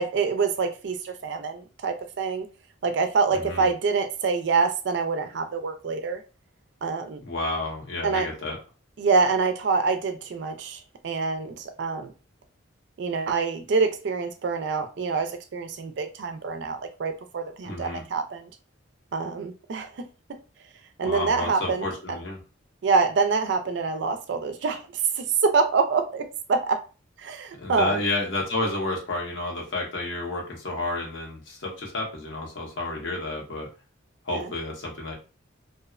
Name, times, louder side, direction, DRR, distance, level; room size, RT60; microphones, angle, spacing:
voice 1, 0.0-2.5 2.8-6.2 6.8-7.2 8.0-8.3 9.0-12.1 13.0-18.5 19.1-20.1 21.0-21.8 22.8-24.9 25.2-26.8 27.2-28.0 34.3-34.5, right 4 dB, 60° right, 0.4 m, -26 dB
voice 2, 3.3-3.7 7.2-8.6 17.6-18.0 21.0-22.4 27.6-33.7 34.2-35.1, left 2 dB, 65° left, 1.0 m, -30 dB
2.5 x 2.0 x 2.4 m
head